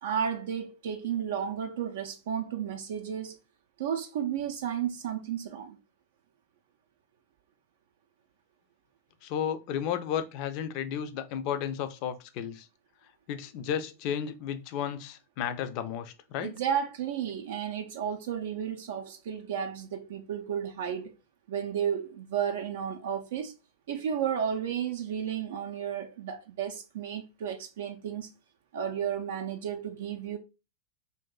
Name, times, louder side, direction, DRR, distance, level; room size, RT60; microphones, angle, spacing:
voice 1, 0.0-3.4 3.8-5.8 16.4-21.1 21.5-23.5 23.9-28.3 28.7-30.4, right 8 dB, 55° right, 0.4 m, -33 dB
voice 2, 9.2-12.7 13.3-16.6, left 9 dB, 45° left, 0.4 m, -33 dB
2.7 x 2.5 x 3.6 m
figure-of-eight pair, 90°, 0 cm